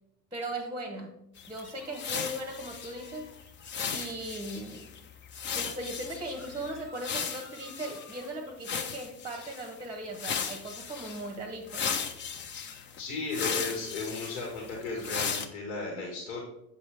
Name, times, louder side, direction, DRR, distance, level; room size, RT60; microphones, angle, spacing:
voice 1, 0.3-1.2 1.5-3.3 3.9-4.9 5.5-11.9, right 1 dB, 10° right, 3 dB, 1.0 m, -38 dB
sound 1, 1.4-8.3 8.6-9.7 10.1-11.3 11.7-15.5, left 6 dB, 25° left, 0.6 m, -36 dB
sound 2, 1.6-3.4 6.3-8.3, left 2 dB, 40° left, 1.7 m, -53 dB
voice 2, 13.0-16.4, left 3 dB, 60° left, 0 dB, 1.9 m, -35 dB
7.9 x 5.3 x 3.4 m, 0.81 s
figure-of-eight pair, 80°, 48 cm